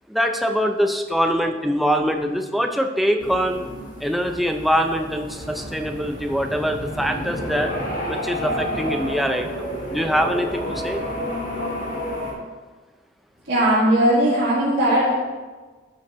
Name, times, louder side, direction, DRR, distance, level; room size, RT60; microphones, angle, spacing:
voice 1, 0.1-3.6 4.0-7.7 8.1-11.0, equal, ahead, 4 dB, 0.5 m, -23 dB
sound 1, 3.2-12.3, equal, 45° left, 1.8 m, -30 dB
voice 2, 13.5-15.1, right 1 dB, 75° right, -10 dB, 2.1 m, -18 dB
12.5 x 5.5 x 3.1 m, 1.3 s
head